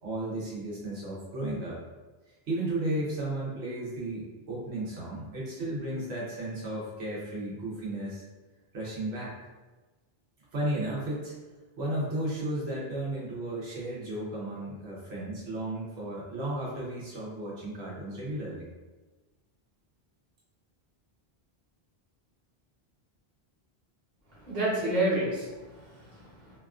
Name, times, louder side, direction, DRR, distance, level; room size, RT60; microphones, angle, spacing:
voice 1, 0.0-1.8 2.3-8.2 8.7-9.3 10.5-11.3 11.8-18.7, right 1 dB, 85° right, -5 dB, 1.0 m, -34 dB
voice 2, 24.3-26.6, right 1 dB, 45° right, -7 dB, 1.1 m, -30 dB
2.8 x 2.3 x 2.4 m, 1.2 s
omnidirectional pair, 1.1 m